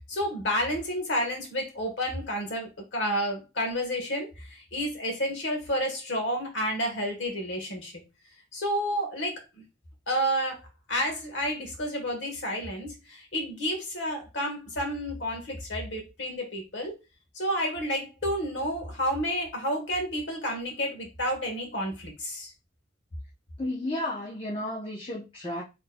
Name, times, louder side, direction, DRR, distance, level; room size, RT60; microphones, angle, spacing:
voice 1, 0.1-8.0 8.5-9.6 10.1-10.6 10.9-16.9 17.3-22.5, equal, 75° left, 1.3 m, -30 dB
voice 2, 23.6-25.6, left 1 dB, 30° left, 0.8 m, -33 dB
3.9 x 3.2 x 2.2 m
head